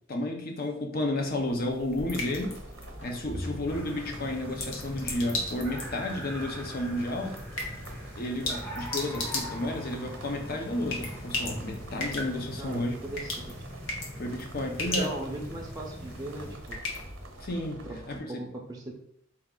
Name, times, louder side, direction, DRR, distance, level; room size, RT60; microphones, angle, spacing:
voice 1, 0.1-2.6 3.0-7.4 8.2-13.0 14.2-15.1 17.4-18.4, left 1 dB, 50° left, 3 dB, 0.6 m, -32 dB
sound 1, 1.2-17.6, left 2 dB, 75° left, 1.0 m, -38 dB
sound 2, 2.1-18.2, right 2 dB, 70° right, 0.8 m, -48 dB
sound 3, 3.7-16.6, equal, 10° left, 0.8 m, -42 dB
voice 2, 12.6-13.4 14.8-16.8 17.8-18.9, right 2 dB, 20° right, -1 dB, 0.5 m, -39 dB
4.4 x 2.4 x 3.6 m, 0.69 s
head